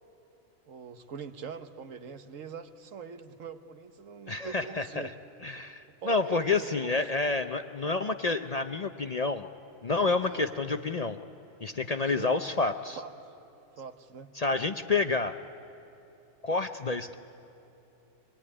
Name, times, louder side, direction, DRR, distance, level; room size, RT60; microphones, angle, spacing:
voice 1, 0.7-5.1 6.0-7.0 10.3-10.5 12.0-12.4 13.0-13.1 13.8-14.3, right 6 dB, 75° right, 9 dB, 1.5 m, -43 dB
voice 2, 4.3-5.1 5.4-9.5 9.8-11.2 11.6-13.0 14.4-15.4 16.4-17.2, left 3 dB, 45° left, 8 dB, 0.5 m, -29 dB
24.5 x 21.0 x 9.8 m, 3.0 s
omnidirectional pair, 1.4 m